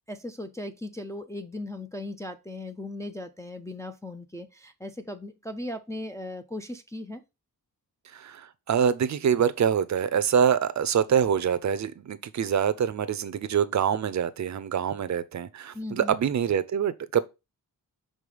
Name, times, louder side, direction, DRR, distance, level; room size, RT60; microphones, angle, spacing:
voice 1, 0.1-7.2 15.7-16.1, left 1 dB, 10° left, 0.4 m, -37 dB
voice 2, 8.1-17.2, right 8 dB, 45° right, 0.5 m, -25 dB
5.4 x 3.8 x 4.9 m
wide cardioid pair, 155°, 39 cm